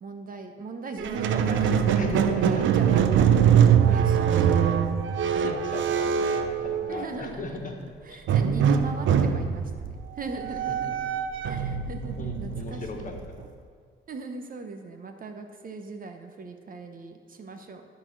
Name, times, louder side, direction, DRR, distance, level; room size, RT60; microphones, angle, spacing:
voice 1, 0.0-4.6 6.9-7.6 8.0-13.2 14.1-17.8, right 3 dB, 45° right, 5 dB, 0.9 m, -39 dB
Squeak, 1.0-7.3 8.3-13.4, right 8 dB, 75° right, 0.6 m, -23 dB
voice 2, 1.5-2.6 4.9-5.0 5.4-7.7 8.1-8.2 12.2-13.1, left 3 dB, 40° left, 2 dB, 1.5 m, -37 dB
12.5 x 4.2 x 6.1 m, 2.1 s
cardioid pair, 90°, 20 cm